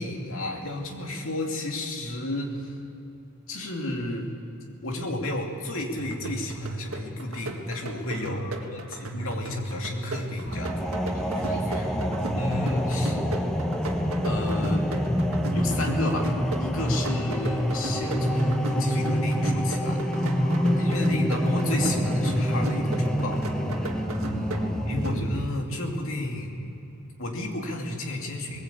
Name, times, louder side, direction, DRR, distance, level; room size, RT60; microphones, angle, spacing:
voice 1, 0.0-2.8 3.5-4.3 4.8-10.8 12.3-13.2 14.2-14.9 15.5-20.0 20.7-23.5 24.8-26.6 27.2-28.6, left 1 dB, 70° left, 1 dB, 2.8 m, -31 dB
sound 1, 6.0-25.6, right 2 dB, 85° right, 1.8 m, -36 dB
voice 2, 8.1-8.9 10.5-11.9 16.7-17.0 20.0-21.1 24.0-25.1, left 2 dB, 45° left, -1 dB, 5.7 m, -46 dB
sound 2, 10.5-25.5, equal, 5° left, 1.1 m, -26 dB
20.5 x 17.0 x 8.4 m, 3.0 s
head